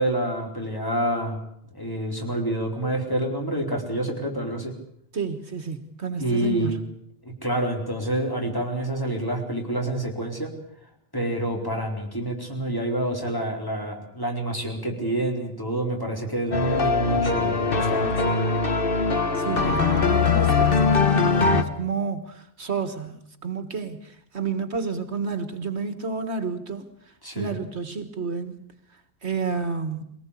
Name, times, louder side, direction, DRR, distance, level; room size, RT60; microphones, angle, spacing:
voice 1, 0.0-1.4 1.7-4.7 6.2-6.8 7.2-10.5 11.1-18.3 27.2-27.6, right 1 dB, 20° left, 1 dB, 4.5 m, -27 dB
voice 2, 5.1-6.9 19.3-30.0, right 5 dB, 70° right, 9 dB, 1.8 m, -31 dB
sound 1, 16.5-21.6, left 4 dB, 50° left, 1.6 m, -21 dB
23.0 x 18.5 x 8.5 m, 0.72 s
omnidirectional pair, 1.2 m